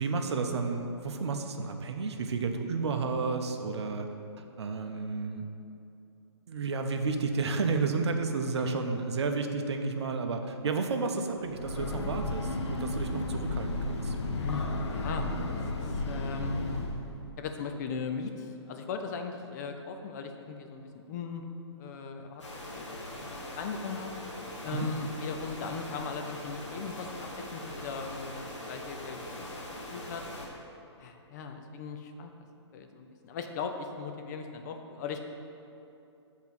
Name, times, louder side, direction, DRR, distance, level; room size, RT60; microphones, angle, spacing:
voice 1, 0.0-4.1 4.6-5.5 6.5-14.2 24.7-24.9, right 4 dB, 65° right, 6 dB, 0.7 m, -31 dB
Breathing / Train, 11.4-17.2, left 2 dB, 70° left, 0.8 m, -33 dB
voice 2, 14.3-15.3 15.7-16.6 17.4-21.4 21.8-22.4 22.7-24.1 24.6-29.5 29.9-30.2 31.0-32.3 32.7-35.2, left 5 dB, 35° left, 5 dB, 0.6 m, -38 dB
sound 1, 22.4-30.5, left 1 dB, 90° left, 1.6 m, -41 dB
7.1 x 3.6 x 5.9 m, 2.7 s
hypercardioid pair, 135°, 15 cm